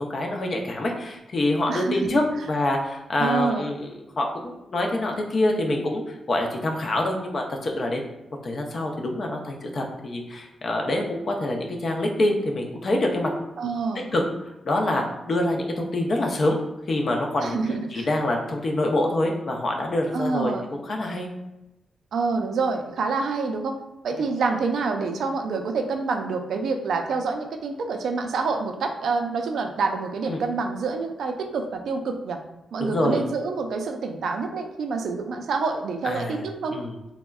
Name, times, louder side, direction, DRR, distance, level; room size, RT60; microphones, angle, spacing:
voice 1, 0.0-8.1 8.4-13.3 14.0-14.2 14.6-16.6 16.9-17.6 17.9-21.3 24.2-24.3 30.3-30.4 32.8-33.2 36.0-36.4 36.7-36.9, left 1 dB, 50° left, 2 dB, 0.5 m, -26 dB
voice 2, 1.7-2.2 3.2-3.7 13.6-14.0 17.4-18.1 20.1-20.6 22.1-23.8 24.0-32.4 32.7-36.8, right 4 dB, 75° right, 5 dB, 0.3 m, -27 dB
3.4 x 2.0 x 2.3 m, 0.95 s
cardioid pair, 80°, 0 cm